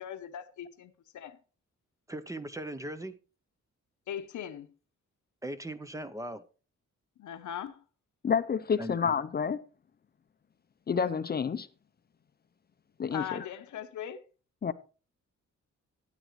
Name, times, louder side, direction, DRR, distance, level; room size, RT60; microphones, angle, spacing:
voice 1, 0.0-1.4 4.1-4.7 7.2-7.8 13.1-14.2, left 9 dB, 85° left, 0.9 m, -39 dB
voice 2, 2.1-3.2 5.4-6.4 8.8-9.0, right 1 dB, 10° right, 0.6 m, -38 dB
voice 3, 8.2-9.6 10.9-11.7 13.0-13.4 14.6-14.7, left 6 dB, 35° left, 0.5 m, -29 dB
13.0 x 9.2 x 3.1 m
wide cardioid pair, 140°, 29 cm